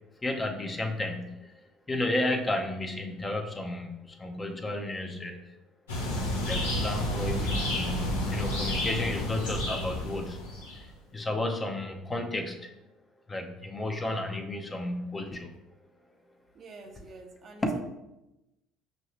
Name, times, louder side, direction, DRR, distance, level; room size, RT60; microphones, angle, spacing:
voice 1, 0.2-1.5 1.9-5.4 6.4-10.4 10.8-10.9 11.1-12.7 13.3-15.5 17.6-17.7, left 1 dB, 25° left, 4 dB, 0.6 m, -32 dB
sound 1, 5.9-10.8, left 1 dB, 90° left, 0.9 m, -30 dB
voice 2, 16.5-17.8, right 3 dB, 45° right, 5 dB, 0.6 m, -47 dB
5.5 x 2.6 x 3.1 m, 0.95 s
hypercardioid pair, 70°, 0 cm